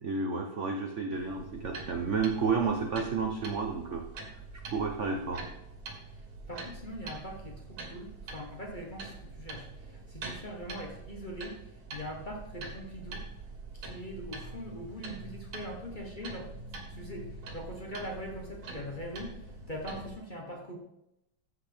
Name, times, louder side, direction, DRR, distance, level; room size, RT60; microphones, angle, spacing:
voice 1, 0.0-4.0 4.7-5.4, right 5 dB, 60° right, 3 dB, 0.8 m, -31 dB
sound 1, 1.1-20.2, right 3 dB, 90° right, 2.4 m, -45 dB
voice 2, 6.1-13.3 13.7-16.5 16.9-20.8, equal, 30° left, 0 dB, 1.2 m, -42 dB
13.5 x 5.8 x 3.5 m, 0.84 s
omnidirectional pair, 2.3 m